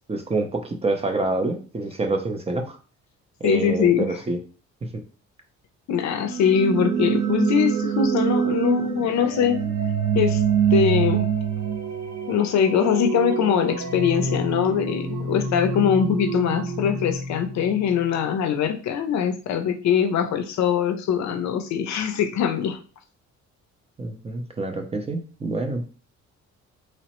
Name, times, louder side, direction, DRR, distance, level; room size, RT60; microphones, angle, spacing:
voice 1, 0.1-2.8 3.4-4.4 24.0-25.8, right 2 dB, 20° right, 4 dB, 0.5 m, -27 dB
voice 2, 3.4-4.2 5.9-9.6 10.1-10.4 10.7-11.3 12.3-22.8, left 8 dB, 65° left, 7 dB, 0.5 m, -22 dB
sound 1, 6.1-18.1, right 6 dB, 65° right, 0.6 m, -26 dB
3.0 x 2.0 x 2.9 m, 0.37 s
cardioid pair, 90°, 30 cm